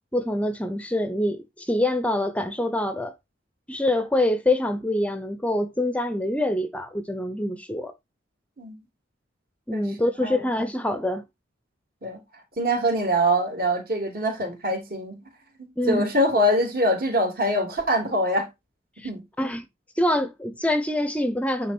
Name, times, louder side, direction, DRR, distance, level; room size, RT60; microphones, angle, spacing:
voice 1, 0.1-3.1 3.7-7.9 9.7-11.2 15.8-16.1 19.0-19.1 19.4-19.6 20.0-21.7, left 1 dB, 5° left, 0.6 m, -25 dB
voice 2, 12.6-15.2 15.9-18.5 19.0-19.2, equal, 50° right, 3.3 m, -23 dB
9.3 x 3.9 x 4.4 m
head